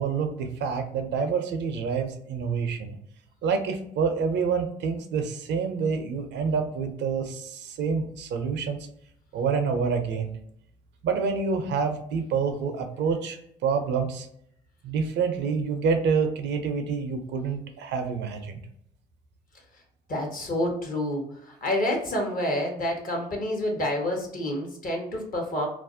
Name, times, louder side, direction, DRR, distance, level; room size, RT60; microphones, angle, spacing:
voice 1, 0.0-3.0 3.4-8.9 9.3-10.3 11.0-14.3 14.8-18.6, right 5 dB, 65° right, 6 dB, 0.5 m, -27 dB
voice 2, 20.1-25.7, left 1 dB, 45° left, 1 dB, 1.0 m, -28 dB
2.4 x 2.0 x 2.6 m, 0.70 s
hypercardioid pair, 50°, 20 cm